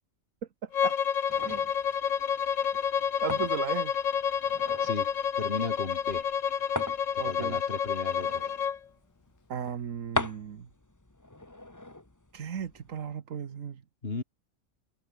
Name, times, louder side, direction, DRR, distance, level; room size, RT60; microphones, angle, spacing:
voice 1, 0.6-1.0 1.4-1.6 3.2-3.9 7.2-7.6 9.5-10.7 12.3-13.8, right 8 dB, 70° right, 1.6 m, -36 dB
Bowed string instrument, 0.7-8.8, left 8 dB, 70° left, 1.5 m, -29 dB
sound 1, 1.3-13.1, left 2 dB, 15° left, 1.5 m, -41 dB
voice 2, 4.6-5.1 5.4-6.3 7.1-8.5 14.0-14.2, left 3 dB, 45° left, 2.6 m, -36 dB
omnidirectional pair, 1.4 m